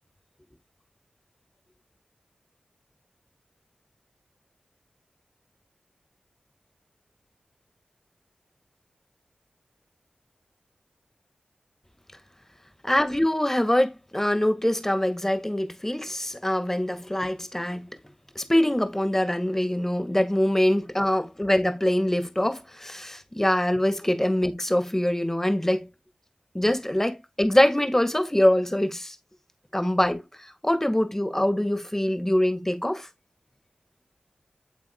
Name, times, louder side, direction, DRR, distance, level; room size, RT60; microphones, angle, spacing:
voice 1, 12.8-17.9 18.4-25.9 26.5-29.2 29.7-30.2 30.6-33.1, left 1 dB, 15° left, 2.0 m, -24 dB
9.0 x 7.2 x 2.4 m
cardioid pair, 45°, 3 cm